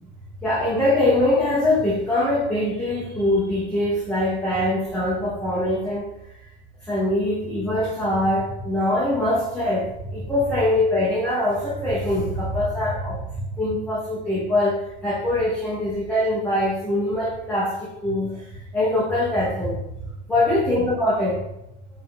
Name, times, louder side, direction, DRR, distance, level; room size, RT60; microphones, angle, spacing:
voice 1, 0.4-6.1 6.9-13.2 13.6-17.7 18.0-18.4 18.7-19.8 20.3-21.4, left 1 dB, 5° left, -8 dB, 1.1 m, -23 dB
3.4 x 2.8 x 4.3 m, 0.89 s
hypercardioid pair, 90°, 30 cm